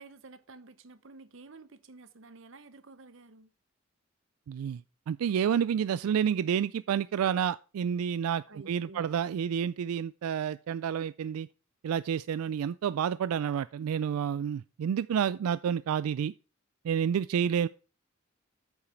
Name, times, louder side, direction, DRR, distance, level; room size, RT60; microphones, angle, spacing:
voice 1, 0.0-3.5 8.5-9.1, right 3 dB, 60° right, 0.9 m, -51 dB
voice 2, 4.5-4.8 5.1-11.5 11.8-16.3 16.8-17.7, right 8 dB, 90° right, 0.3 m, -29 dB
9.0 x 7.2 x 4.4 m
head